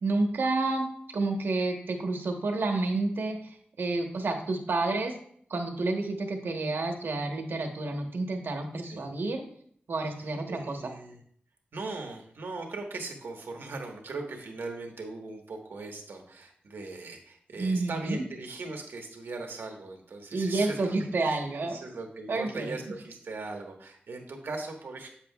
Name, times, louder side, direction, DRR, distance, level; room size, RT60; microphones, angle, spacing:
voice 1, 0.0-0.8 1.1-5.2 5.5-9.4 9.9-10.8 17.5-18.2 20.3-21.8 22.3-22.8, right 2 dB, 75° right, 4 dB, 1.1 m, -29 dB
voice 2, 10.2-11.2 11.7-25.1, right 3 dB, 90° right, 2 dB, 1.3 m, -39 dB
8.4 x 7.4 x 2.3 m, 0.62 s
wide cardioid pair, 120°, 4 cm